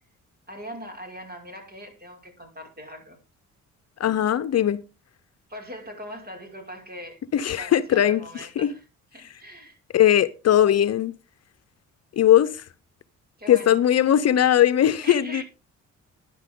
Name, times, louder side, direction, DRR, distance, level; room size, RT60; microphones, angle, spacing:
voice 1, 0.5-3.2 5.5-7.2 7.5-8.8 9.1-9.8 13.4-13.8 15.0-15.4, equal, 30° right, 5.7 m, -40 dB
voice 2, 4.0-4.8 7.3-8.2 8.6-8.7 9.9-11.1 12.2-12.6 13.5-15.4, left 11 dB, 55° left, 0.8 m, -19 dB
12.0 x 11.0 x 3.8 m
cardioid pair, 90°, 30 cm